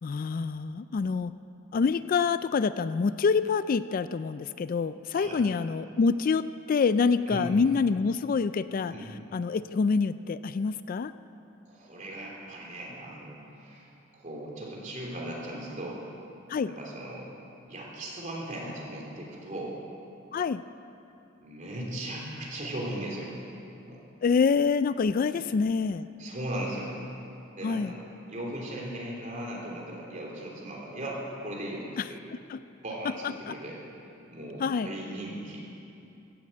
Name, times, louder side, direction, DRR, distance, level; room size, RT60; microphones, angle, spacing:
voice 1, 0.0-1.3 1.7-8.9 9.3-11.1 16.5-16.7 20.3-20.6 24.2-26.1 27.6-27.9 32.5-32.6 33.2-33.5 34.6-34.9, left 5 dB, 45° left, 14 dB, 0.3 m, -26 dB
voice 2, 11.6-16.0 16.6-17.3 17.7-19.8 21.4-23.3 23.8-24.0 25.3-25.4 26.2-27.0 27.6-28.0 28.3-32.2 32.8-33.8 34.3-35.8, right 1 dB, 40° right, -3 dB, 3.3 m, -38 dB
16.0 x 9.7 x 7.8 m, 2.8 s
head